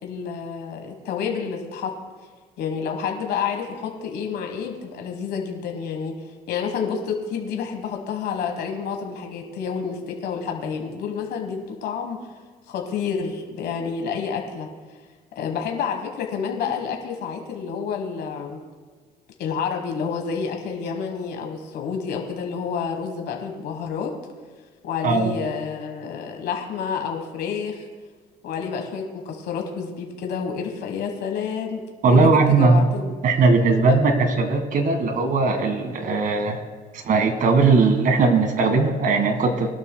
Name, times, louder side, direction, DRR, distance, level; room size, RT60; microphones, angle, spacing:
voice 1, 0.0-1.9 2.6-12.3 12.7-14.7 15.3-18.6 19.4-24.1 24.8-27.9 28.4-33.1, left 6 dB, 70° left, 3 dB, 1.4 m, -29 dB
voice 2, 32.0-32.8 33.2-36.6 36.9-39.7, right 4 dB, 50° right, 7 dB, 1.7 m, -19 dB
20.5 x 12.0 x 2.3 m, 1.5 s
cardioid pair, 110°, 17 cm